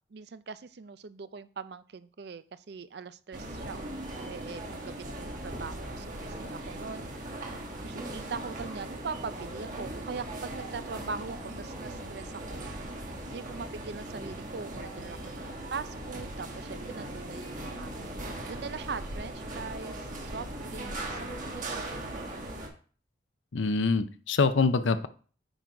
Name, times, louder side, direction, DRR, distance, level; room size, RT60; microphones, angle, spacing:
voice 1, 0.1-7.1 7.8-12.7 13.3-17.9 18.4-21.2 21.5-22.0, right 5 dB, 60° right, 14 dB, 0.4 m, -41 dB
sound 1, 3.3-22.7, right 1 dB, 45° right, 1.4 m, -39 dB
voice 2, 23.5-25.1, left 4 dB, 80° left, 11 dB, 0.6 m, -25 dB
9.0 x 3.9 x 4.7 m, 0.40 s
head